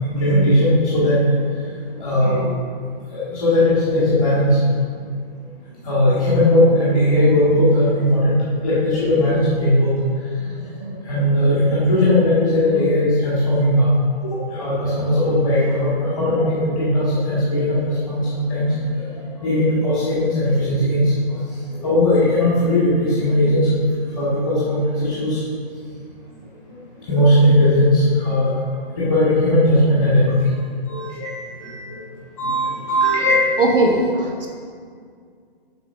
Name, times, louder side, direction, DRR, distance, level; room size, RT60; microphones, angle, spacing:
voice 1, 0.1-1.2 1.8-2.5 3.1-4.6 5.8-8.4 8.6-9.9 10.3-13.9 14.2-21.4 21.7-23.8 24.1-25.4 27.1-28.5 29.0-30.3 30.9-32.0 32.4-33.4, left 1 dB, ahead, -28 dB, 0.5 m, -18 dB
voice 2, 33.6-34.5, right 2 dB, 70° right, -1 dB, 1.7 m, -18 dB
6.9 x 4.8 x 5.6 m, 2.1 s
hypercardioid pair, 170°, 29 cm